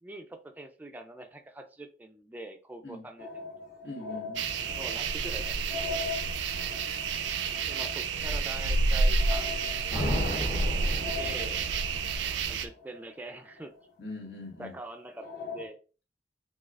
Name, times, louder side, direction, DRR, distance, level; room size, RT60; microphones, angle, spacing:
voice 1, 0.0-3.5 4.7-6.0 7.7-10.5 11.2-11.7 12.5-13.7 14.6-15.8, right 1 dB, 10° right, 4 dB, 0.4 m, -44 dB
sound 1, 3.2-14.0 14.5-14.6 15.2-15.7, left 4 dB, 50° left, 1.3 m, -42 dB
voice 2, 3.8-4.5 6.1-6.3 12.0-12.3 14.0-14.8, left 2 dB, 70° left, -2 dB, 1.4 m, -42 dB
sound 2, 4.4-12.7, right 4 dB, 75° right, 0.4 m, -29 dB
sound 3, 9.9-11.9, left 1 dB, 35° left, 0.7 m, -33 dB
6.2 x 2.4 x 2.3 m, 0.35 s
head